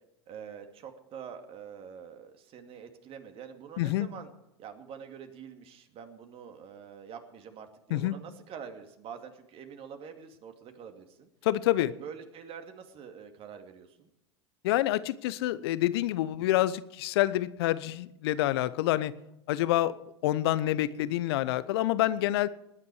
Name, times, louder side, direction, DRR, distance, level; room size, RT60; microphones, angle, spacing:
voice 1, 0.3-4.3 4.6-11.3 11.8-14.1 19.6-19.7, right 7 dB, 40° right, 6 dB, 2.4 m, -46 dB
voice 2, 3.8-4.1 7.9-8.2 11.4-11.9 14.6-19.1 19.5-19.9 20.2-22.5, left 14 dB, 65° left, 17 dB, 0.9 m, -27 dB
19.5 x 9.8 x 4.8 m, 0.85 s
hypercardioid pair, 85°, 14 cm